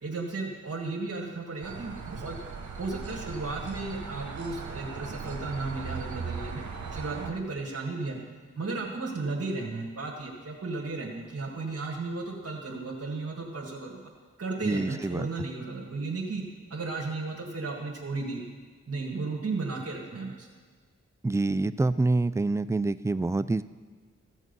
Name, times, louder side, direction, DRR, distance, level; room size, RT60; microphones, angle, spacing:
voice 1, 0.0-2.4 2.8-6.6 6.9-8.2 8.5-14.1 14.4-16.4 16.7-18.4 18.9-20.5, right 3 dB, 55° right, -1 dB, 1.8 m, -34 dB
sound 1, 1.6-7.3, right 5 dB, 75° right, 1.2 m, -38 dB
voice 2, 14.6-15.3 21.2-23.6, right 2 dB, 10° right, 15 dB, 0.4 m, -26 dB
15.5 x 6.4 x 5.4 m, 1.5 s
cardioid pair, 40°, 29 cm